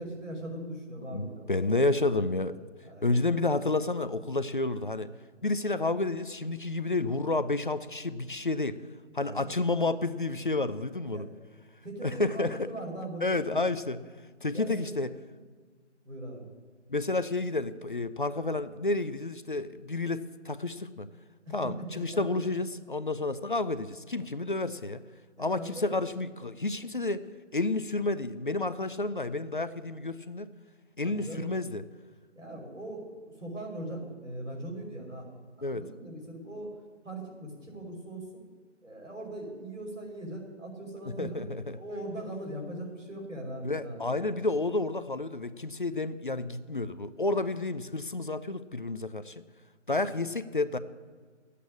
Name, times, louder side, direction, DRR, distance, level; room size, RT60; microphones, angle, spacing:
voice 1, 0.0-1.9 2.9-3.2 9.2-9.5 11.1-11.3 11.8-13.7 14.5-15.0 16.0-16.5 21.5-22.2 25.4-26.0 31.0-31.5 32.4-36.7 37.0-38.4 38.8-41.4 41.7-44.3 49.9-50.1, right 1 dB, 90° right, 0 dB, 5.3 m, -40 dB
voice 2, 1.1-2.6 3.0-5.1 5.4-8.8 9.1-11.3 12.0-12.6 13.2-14.0 14.4-15.1 16.9-21.1 21.5-25.0 25.4-27.2 27.5-30.5 31.0-31.8 35.6-35.8 41.2-41.8 43.6-49.4 49.9-50.8, left 2 dB, 45° left, 13 dB, 0.6 m, -30 dB
12.0 x 8.4 x 8.5 m, 1.5 s
figure-of-eight pair, 160°, 36 cm